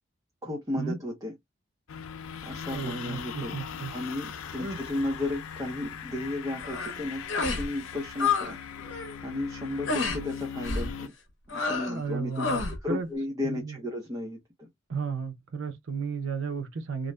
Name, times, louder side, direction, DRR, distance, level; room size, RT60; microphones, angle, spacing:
voice 1, 0.4-1.3 2.4-3.6 3.9-8.6 9.2-11.1 11.5-12.5 12.8-14.7, left 2 dB, 15° right, 0.6 m, -34 dB
sound 1, 1.9-11.1, left 7 dB, 85° left, 0.4 m, -40 dB
voice 2, 2.7-3.9 4.6-4.8 11.9-12.6 12.9-13.1 13.4-13.8 14.9-17.1, right 5 dB, 70° right, 0.6 m, -33 dB
sound 2, 6.6-7.0 7.3-7.7 7.9-8.5 8.8-9.1 9.9-10.2 10.6-10.9 11.5-12.0 12.3-12.8, left 4 dB, 65° left, 0.8 m, -29 dB
2.5 x 2.1 x 3.1 m
head